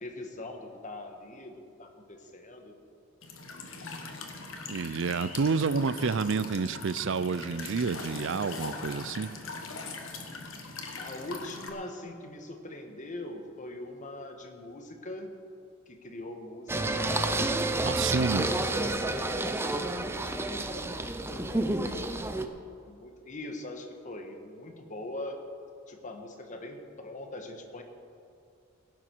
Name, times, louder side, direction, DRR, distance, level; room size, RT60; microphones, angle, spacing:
voice 1, 0.0-2.7 3.8-4.0 11.0-15.3 15.9-17.6 18.2-22.0 22.9-25.4 25.9-27.8, left 1 dB, 40° left, 4 dB, 1.4 m, -42 dB
Walk footsteps / Chirp tweet / Stream, 3.2-11.7, left 3 dB, 85° left, 1.6 m, -41 dB
voice 2, 4.7-9.3 17.8-18.5, right 5 dB, 65° right, 15 dB, 0.5 m, -29 dB
Singing, 16.7-22.5, right 2 dB, 10° right, 0.6 m, -30 dB
17.0 x 11.0 x 4.6 m, 2.5 s
head